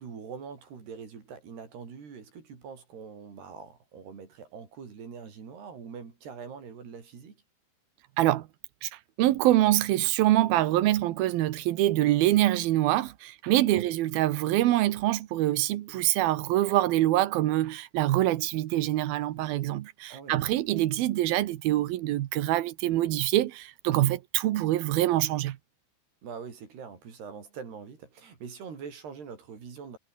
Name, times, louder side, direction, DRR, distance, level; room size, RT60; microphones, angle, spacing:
voice 1, 0.0-7.4 13.6-13.9 20.1-20.4 26.2-30.0, right 6 dB, 50° right, 6.5 m, -43 dB
voice 2, 8.2-8.5 8.8-25.6, right 15 dB, 85° right, 2.1 m, -25 dB
omnidirectional pair, 6.0 m